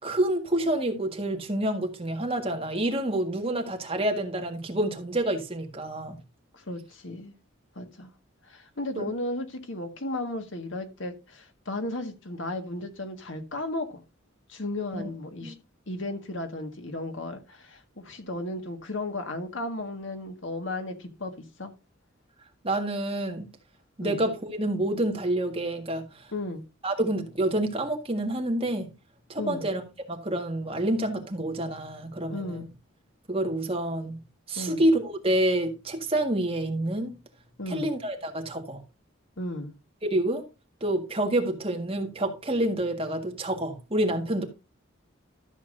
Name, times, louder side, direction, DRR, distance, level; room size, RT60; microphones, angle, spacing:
voice 1, 0.0-6.2 8.9-9.1 14.9-15.1 15.4-15.5 22.6-23.5 24.0-26.3 26.8-28.9 29.3-29.8 30.1-32.7 33.3-34.2 34.5-37.1 37.7-38.8 40.0-40.4 40.8-44.4, right 1 dB, 25° right, 1.7 m, -28 dB
voice 2, 6.5-7.3 7.7-8.1 8.5-14.0 14.5-15.5 15.9-21.7 24.0-24.2 26.3-26.6 29.4-29.6 32.3-32.7 34.5-34.8 37.6-37.9 39.4-39.7, left 2 dB, 65° left, 1.8 m, -34 dB
13.5 x 7.3 x 2.6 m
head